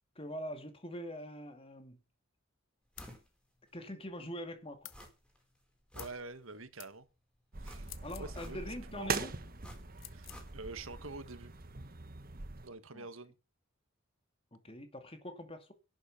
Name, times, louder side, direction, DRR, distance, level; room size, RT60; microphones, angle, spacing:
voice 1, 0.2-2.0 3.7-4.9 8.0-9.3 12.9-13.1 14.5-15.7, equal, 30° left, 2.4 m, -43 dB
sound 1, 2.9-3.3 3.7-3.8 4.9-5.4 5.7-6.7 7.6-8.9 9.6-10.9 11.1-11.2, equal, 5° left, 4.6 m, -53 dB
sound 2, 3.0-3.2 4.8-5.0 6.0-6.2 6.8-6.9 7.8-8.3 10.0-10.4, left 15 dB, 80° left, 1.1 m, -50 dB
voice 2, 5.9-7.1 7.6-7.9 8.2-8.6 8.9-9.1 10.1-10.3 10.5-11.5 12.6-13.3, right 3 dB, 85° right, 1.7 m, -46 dB
sound 3, 7.5-12.7, right 4 dB, 45° right, 1.4 m, -42 dB
11.5 x 7.8 x 7.3 m
head